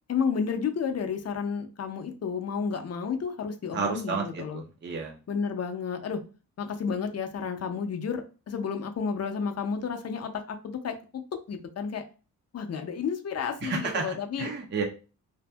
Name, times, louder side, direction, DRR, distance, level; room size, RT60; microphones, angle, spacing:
voice 1, 0.1-4.6 5.3-6.2 6.6-11.2 11.5-12.0 12.5-14.5, left 6 dB, 40° left, 6 dB, 0.5 m, -31 dB
voice 2, 3.7-5.1 13.6-14.8, right 5 dB, 30° right, 2 dB, 0.4 m, -31 dB
2.6 x 2.5 x 2.2 m, 0.34 s
cardioid pair, 105°, 38 cm